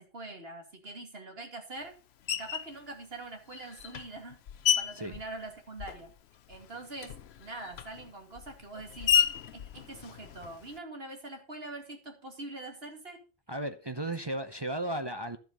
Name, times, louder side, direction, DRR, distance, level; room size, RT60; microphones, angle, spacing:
voice 1, 0.0-1.9 2.4-4.4 4.7-6.1 6.5-9.2 9.5-13.2, right 2 dB, 60° right, 2.9 m, -43 dB
Screech, 2.3-2.8 3.5-6.2 6.5-10.8, left 9 dB, 70° left, 0.9 m, -32 dB
voice 2, 13.5-15.4, right 1 dB, 25° right, 0.7 m, -35 dB
11.5 x 7.7 x 5.4 m
omnidirectional pair, 1.2 m